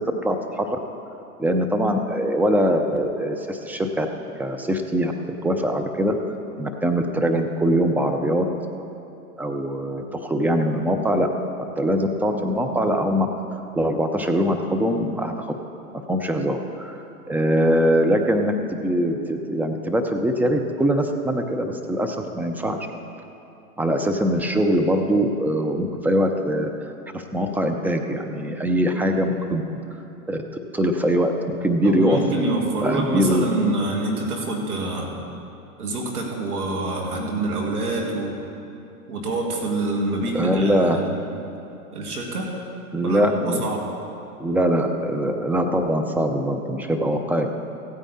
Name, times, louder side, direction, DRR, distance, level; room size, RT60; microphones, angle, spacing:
voice 1, 0.2-0.8 1.4-4.1 4.4-5.1 5.4-6.2 6.6-8.5 9.4-11.3 11.8-13.3 13.7-15.5 16.1-17.0 17.3-18.5 18.8-22.8 23.8-26.7 27.1-29.6 30.3-30.4 30.7-31.3 31.6-32.2 32.8-33.4 40.3-41.0 42.9-43.7 44.4-47.5, equal, 5° right, 4 dB, 0.6 m, -22 dB
voice 2, 31.8-35.2 35.8-38.4 39.1-41.2 41.9-42.5 43.0-43.8, right 2 dB, 85° right, 0 dB, 2.4 m, -26 dB
15.5 x 9.0 x 4.2 m, 2.8 s
hypercardioid pair, 110°, 44 cm